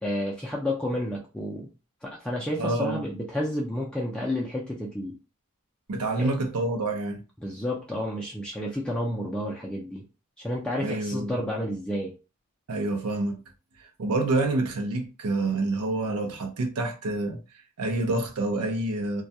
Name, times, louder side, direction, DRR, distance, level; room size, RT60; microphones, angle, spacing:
voice 1, 0.0-1.7 2.0-5.1 6.2-6.3 7.4-10.0 10.4-12.1, left 1 dB, 5° left, 0.4 m, -30 dB
voice 2, 2.6-3.1 5.9-7.2 10.8-11.3 12.7-13.4 13.8-17.4 17.8-19.2, right 2 dB, 85° right, 0.5 m, -27 dB
2.2 x 2.2 x 2.6 m
head